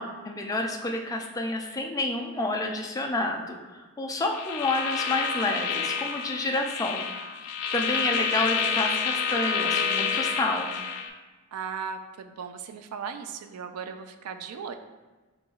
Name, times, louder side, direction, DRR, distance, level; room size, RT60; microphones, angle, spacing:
voice 1, 0.0-7.0 7.7-10.7, left 2 dB, 15° left, 1 dB, 0.3 m, -29 dB
sound 1, 4.3-11.1, left 6 dB, 85° left, 0.4 m, -29 dB
voice 2, 11.5-14.7, right 6 dB, 80° right, 8 dB, 0.4 m, -37 dB
5.6 x 2.9 x 2.3 m, 1.3 s
head